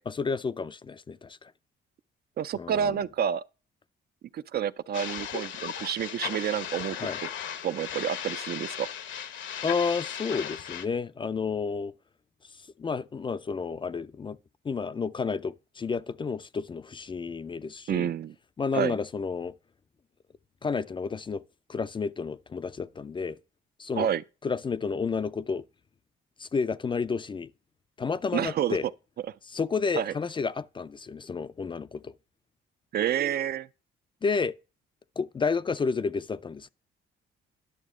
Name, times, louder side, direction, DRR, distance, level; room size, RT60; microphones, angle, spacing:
voice 1, 0.1-1.5 2.6-3.0 7.0-7.2 9.6-11.9 12.5-14.4 14.6-18.1 18.6-19.5 20.6-21.4 21.7-23.4 23.8-24.1 24.4-25.7 26.4-27.5 28.0-28.9 29.5-32.1 34.2-34.5 35.2-36.7, left 5 dB, 25° left, 0.4 m, -31 dB
voice 2, 2.4-3.4 4.3-7.0 7.6-8.9 17.9-18.3 18.7-19.0 24.0-24.2 28.3-28.8 29.9-30.1 32.9-33.7, right 9 dB, 55° right, 0.4 m, -29 dB
sound 1, 4.9-10.9, left 8 dB, 70° left, 0.9 m, -36 dB
11.0 x 6.4 x 3.6 m
cardioid pair, 90°, 20 cm